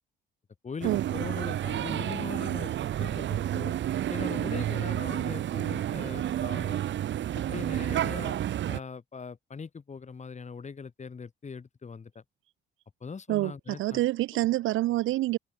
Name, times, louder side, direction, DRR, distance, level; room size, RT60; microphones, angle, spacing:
voice 1, 0.6-3.7 4.1-6.8 7.3-8.4 8.7-12.2 13.0-14.0, left 5 dB, 35° left, 5.4 m, -40 dB
sound 1, 0.8-8.8, right 11 dB, 65° right, 1.3 m, -30 dB
voice 2, 13.3-15.4, right 16 dB, 90° right, 1.3 m, -27 dB
cardioid pair, 90°, 20 cm